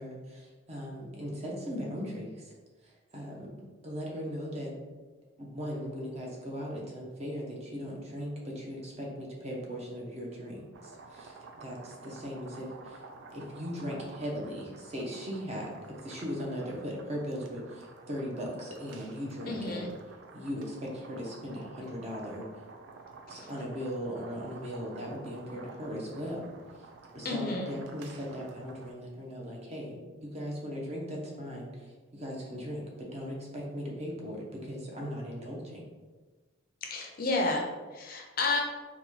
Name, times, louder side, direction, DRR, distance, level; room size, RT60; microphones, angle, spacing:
voice 1, 0.0-2.5 2.8-3.5 3.8-4.7 5.4-13.0 13.3-15.7 16.0-19.9 20.3-22.4 23.3-26.4 27.1-35.8, equal, 30° right, -2 dB, 0.7 m, -38 dB
sound 1, 10.7-28.9, right 3 dB, 65° right, 0.4 m, -51 dB
voice 2, 19.5-19.9 23.3-23.5 27.2-27.7 36.8-38.6, left 3 dB, 45° left, 1 dB, 0.5 m, -31 dB
3.8 x 2.2 x 3.0 m, 1.3 s
head